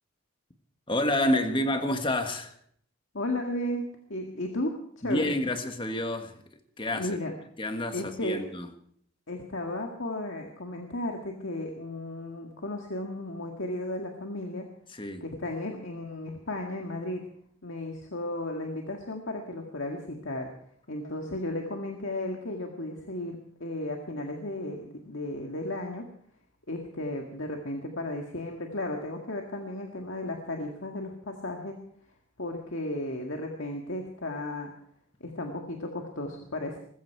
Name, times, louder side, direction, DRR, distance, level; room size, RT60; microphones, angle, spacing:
voice 1, 0.9-2.5 5.0-6.4 6.8-7.2 7.6-8.7 14.9-15.3, left 1 dB, 25° left, 1.6 m, -28 dB
voice 2, 3.1-5.4 6.9-7.3 7.9-8.4 9.3-14.7 15.2-17.2 17.6-20.5 20.9-26.1 26.7-31.8 32.4-34.7 35.2-36.8, left 1 dB, 65° left, 1.9 m, -34 dB
20.5 x 15.0 x 4.7 m
head